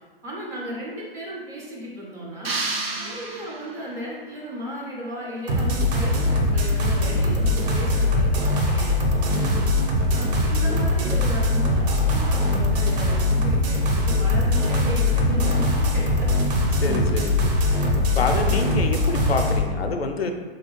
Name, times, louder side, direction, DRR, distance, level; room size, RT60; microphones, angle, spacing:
voice 1, 0.2-2.5 3.0-9.0 10.1-16.4, equal, 10° right, -5 dB, 0.3 m, -35 dB
sound 1, 2.4-4.0, right 3 dB, 80° right, 0.7 m, -30 dB
sound 2, 5.5-19.6, left 1 dB, 45° right, 0.7 m, -21 dB
voice 2, 9.4-9.7 16.7-17.6 18.1-20.3, left 3 dB, 85° left, 4 dB, 0.5 m, -27 dB
3.7 x 2.8 x 2.9 m, 1.4 s
figure-of-eight pair, 105°, 30 cm